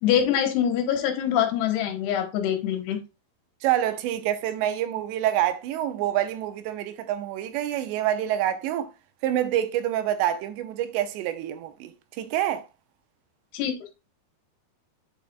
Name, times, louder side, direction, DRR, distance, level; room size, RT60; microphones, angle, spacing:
voice 1, 0.0-3.0 13.5-13.7, left 9 dB, 75° left, 3.1 m, -24 dB
voice 2, 3.6-8.9 9.2-12.6, right 12 dB, 90° right, 3.0 m, -27 dB
7.9 x 6.5 x 2.2 m
omnidirectional pair, 4.9 m